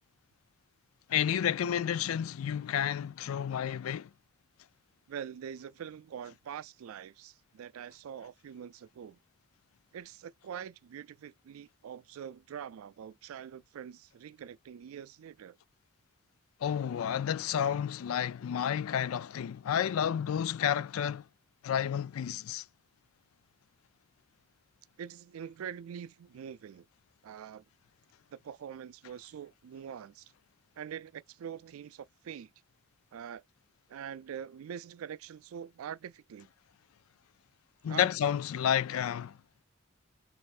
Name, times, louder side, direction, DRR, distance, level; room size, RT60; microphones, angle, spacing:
voice 1, 1.1-4.1 16.6-21.2 21.6-22.6 37.8-39.4, left 9 dB, 85° left, 0.4 m, -30 dB
voice 2, 5.1-9.2 9.9-15.6 25.0-26.9 27.2-27.6 28.3-30.3 30.8-32.5 33.1-33.4 33.9-36.5 37.9-38.1, right 8 dB, 85° right, 0.3 m, -44 dB
5.3 x 2.6 x 2.5 m
head